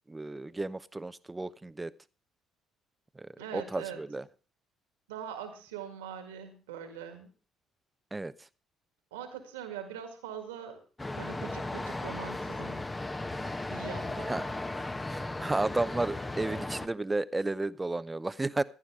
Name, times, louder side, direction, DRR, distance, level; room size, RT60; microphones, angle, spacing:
voice 1, 0.1-1.9 3.2-4.2 8.1-8.3 14.2-14.5 15.1-18.6, right 2 dB, 20° right, 16 dB, 0.7 m, -33 dB
voice 2, 3.4-4.0 5.1-7.3 9.1-10.8 11.1-12.8 13.7-14.4, right 8 dB, 80° right, 6 dB, 1.9 m, -42 dB
sound 1, 11.0-16.9, left 2 dB, 20° left, 1.0 m, -36 dB
15.0 x 11.0 x 3.5 m, 0.36 s
hypercardioid pair, 50°, 0 cm